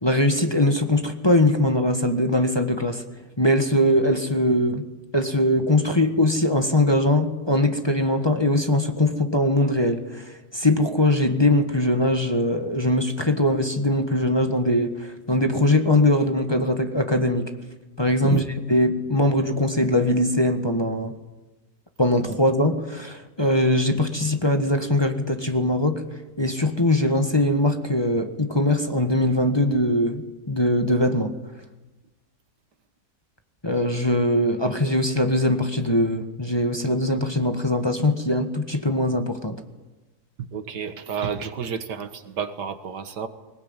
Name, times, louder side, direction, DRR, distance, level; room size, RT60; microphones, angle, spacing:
voice 1, 0.0-3.0 3.4-4.8 5.1-17.5 18.0-18.4 18.7-21.1 22.0-26.0 26.4-31.3 33.6-39.6, left 1 dB, 15° left, 5 dB, 1.5 m, -21 dB
voice 2, 40.4-43.3, right 7 dB, 80° right, 10 dB, 2.0 m, -30 dB
21.0 x 20.0 x 9.0 m, 1.1 s
omnidirectional pair, 1.8 m